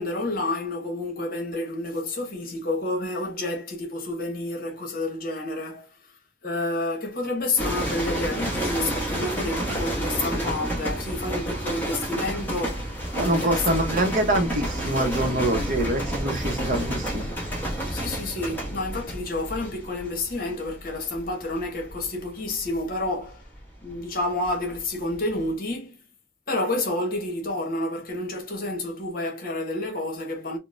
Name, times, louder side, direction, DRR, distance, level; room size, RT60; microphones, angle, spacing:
voice 1, 0.0-5.9 6.4-13.8 17.9-23.5 23.8-26.0 26.5-30.6, left 2 dB, 50° left, 1.1 m, -29 dB
sound 1, 7.6-24.8 25.1-25.5, right 1 dB, 10° left, 1.1 m, -30 dB
voice 2, 13.1-17.3, right 1 dB, 40° right, 0.7 m, -25 dB
3.9 x 2.1 x 2.4 m
head